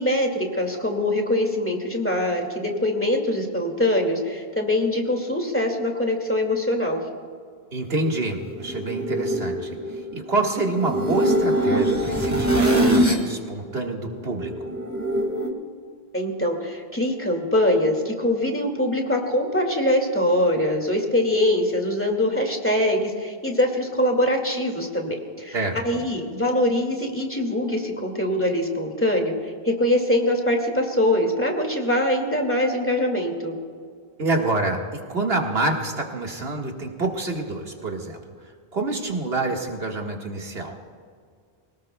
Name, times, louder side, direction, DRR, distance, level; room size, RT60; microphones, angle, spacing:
voice 1, 0.0-7.0 16.1-25.6 25.8-33.5, left 1 dB, 10° left, 2 dB, 2.1 m, -23 dB
voice 2, 7.7-14.7 25.5-26.0 34.2-38.2 38.7-40.8, right 2 dB, 80° right, 1 dB, 1.9 m, -27 dB
sound 1, 8.0-13.3 13.6-15.5, right 1 dB, 15° right, 1.9 m, -23 dB
25.5 x 18.0 x 2.3 m, 2.1 s
omnidirectional pair, 1.0 m